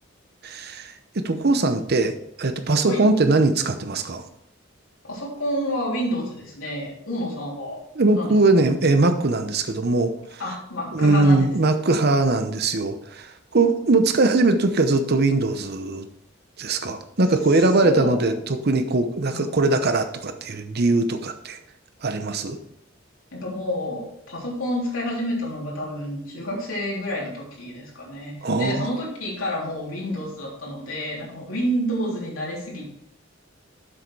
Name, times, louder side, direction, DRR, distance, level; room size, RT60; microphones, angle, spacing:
voice 1, 0.4-4.2 8.0-10.4 10.9-16.1 16.6-21.6 22.0-22.6 28.4-28.9, right 2 dB, 55° right, 8 dB, 0.8 m, -21 dB
voice 2, 5.0-7.8 8.1-8.6 10.4-11.5 17.5-18.6 19.3-19.8 23.3-33.0, equal, 80° left, -4 dB, 3.5 m, -29 dB
7.6 x 6.5 x 4.7 m, 0.73 s
head